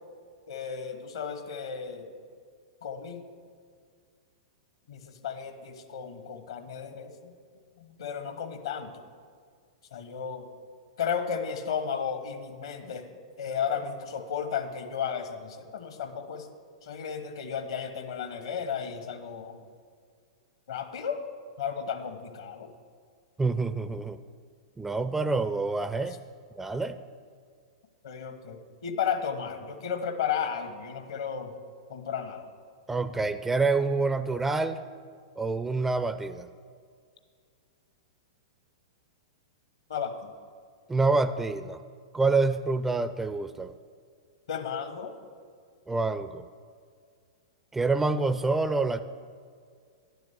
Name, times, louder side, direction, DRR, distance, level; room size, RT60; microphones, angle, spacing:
voice 1, 0.5-2.1 2.8-3.2 4.9-7.3 7.8-9.0 9.9-10.5 11.0-13.1 13.4-16.5 16.8-19.6 20.7-21.2 21.6-22.7 28.0-31.5 31.9-32.5 39.9-40.3 44.5-45.1, left 7 dB, 65° left, 9 dB, 1.1 m, -34 dB
voice 2, 23.4-24.2 24.8-26.2 26.6-27.0 32.9-34.8 35.4-36.5 40.9-41.8 42.1-43.7 45.9-46.4 47.7-49.0, right 3 dB, 10° right, 12 dB, 0.4 m, -27 dB
10.5 x 7.0 x 6.1 m, 2.1 s
figure-of-eight pair, 100°, 3 cm